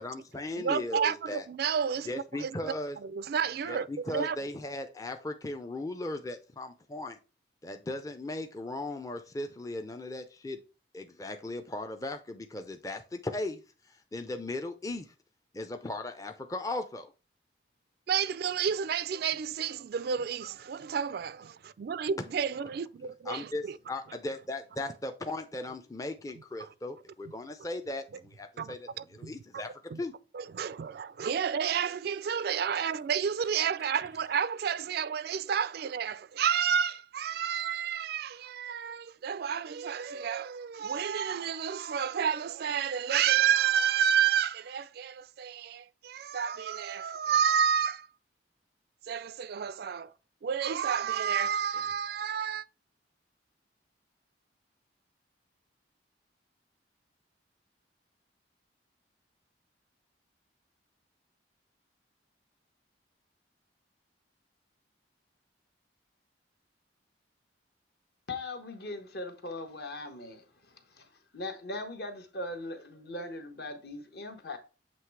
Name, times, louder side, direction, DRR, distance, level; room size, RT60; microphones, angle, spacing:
voice 1, 0.0-1.4 2.1-3.0 3.7-7.2 7.6-10.6 10.9-15.1 15.5-17.1 23.3-29.7 30.0-30.1, left 2 dB, 20° left, 0.5 m, -37 dB
voice 2, 0.5-2.7 3.0-4.4 18.1-23.8 26.6-26.7 28.6-29.6 29.9-30.0 30.3-48.1 49.1-50.1 50.4-52.7, right 8 dB, 55° right, 0.3 m, -30 dB
voice 3, 68.3-74.6, left 2 dB, 55° left, 1.2 m, -40 dB
7.6 x 3.2 x 4.6 m
head